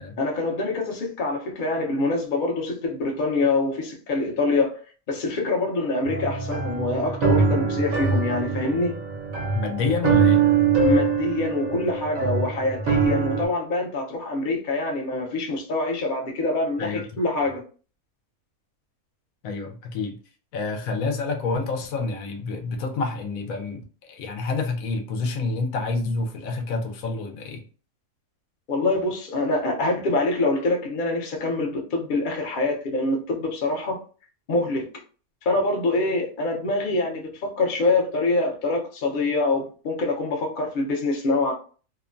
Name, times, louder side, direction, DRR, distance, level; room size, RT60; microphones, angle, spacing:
voice 1, 0.2-8.9 10.8-17.6 28.7-34.0 34.5-34.8 35.4-41.5, left 2 dB, 50° left, 0.7 m, -25 dB
sound 1, 6.0-13.5, right 5 dB, 75° right, 1.2 m, -23 dB
voice 2, 9.5-10.4 16.8-17.1 19.4-20.2 20.5-27.6, left 3 dB, 75° left, 1.0 m, -28 dB
2.9 x 2.1 x 2.5 m
omnidirectional pair, 1.5 m